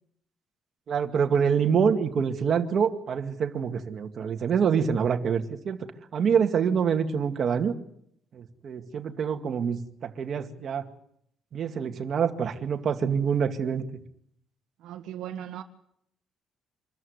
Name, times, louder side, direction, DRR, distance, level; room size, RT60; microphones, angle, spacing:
voice 1, 0.9-5.8 6.1-7.7 8.3-10.9 11.5-13.8, right 7 dB, 50° right, 5 dB, 2.2 m, -26 dB
voice 2, 14.8-15.6, right 10 dB, 80° right, 8 dB, 1.6 m, -37 dB
25.5 x 14.0 x 9.7 m, 0.72 s
cardioid pair, 135°, 0 cm